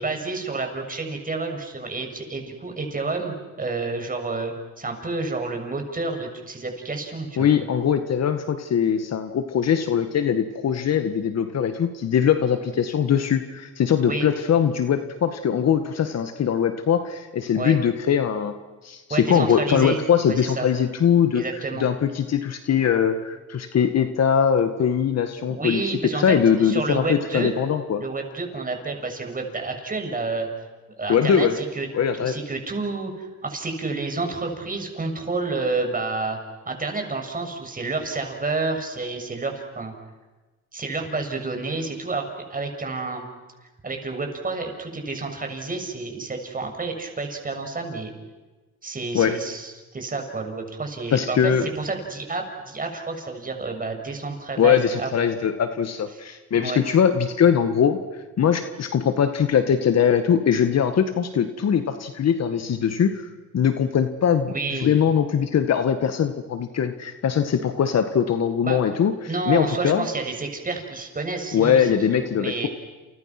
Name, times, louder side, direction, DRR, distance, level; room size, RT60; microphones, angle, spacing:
voice 1, 0.0-7.5 14.0-14.3 17.5-17.8 19.1-20.0 20.2-20.7 21.3-21.9 25.5-27.5 28.0-30.5 31.0-31.9 32.1-36.4 36.6-39.9 40.7-43.2 43.8-48.1 48.8-55.1 56.5-56.8 64.5-64.9 68.6-68.8 69.3-72.7, right 3 dB, 30° right, 4 dB, 6.7 m, -29 dB
voice 2, 7.4-18.5 18.8-21.4 21.8-25.8 26.1-28.0 31.1-31.6 31.9-32.3 49.1-49.3 51.1-51.7 54.6-58.0 58.4-63.3 63.5-64.5 64.8-70.1 71.5-72.7, left 8 dB, 60° left, 8 dB, 1.9 m, -21 dB
30.0 x 29.0 x 6.1 m, 1.2 s
cardioid pair, 90°, 30 cm